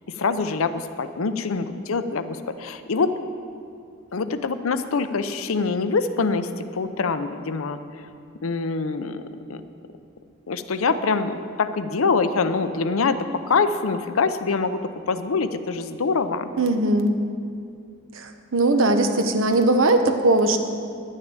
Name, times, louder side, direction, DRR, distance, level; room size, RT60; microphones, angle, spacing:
voice 1, 0.2-3.1 4.1-7.8 8.4-9.2 9.5-9.6 10.5-13.2 13.5-14.8 15.1-16.5, left 4 dB, 85° left, 10 dB, 0.6 m, -24 dB
voice 2, 16.6-17.1 18.1-20.6, right 2 dB, 70° right, 7 dB, 0.9 m, -19 dB
11.0 x 6.5 x 8.8 m, 2.5 s
head